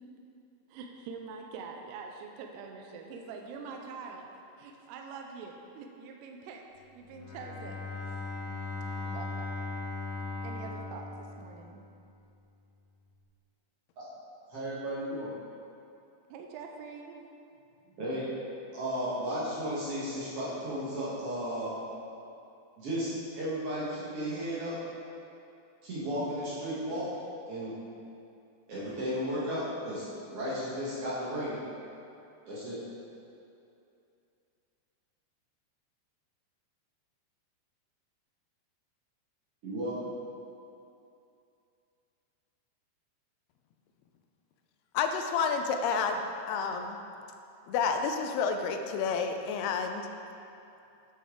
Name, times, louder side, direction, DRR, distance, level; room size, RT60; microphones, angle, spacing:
voice 1, 0.7-4.3 4.6-6.6 6.9-8.4 9.1-9.6 10.4-11.8 16.3-17.3, right 5 dB, 85° right, 2 dB, 2.7 m, -44 dB
Bowed string instrument, 7.0-12.0, left 3 dB, 50° left, 2.5 m, -38 dB
voice 2, 14.5-15.3 18.0-18.2 18.7-21.7 22.8-24.8 25.8-27.1 27.5-27.7 28.7-31.6 32.4-32.8 39.6-40.0, equal, 60° right, -8 dB, 1.5 m, -34 dB
voice 3, 44.9-47.0 47.7-50.1, left 5 dB, 80° left, 5 dB, 2.3 m, -30 dB
8.6 x 8.4 x 3.7 m, 2.7 s
omnidirectional pair, 4.9 m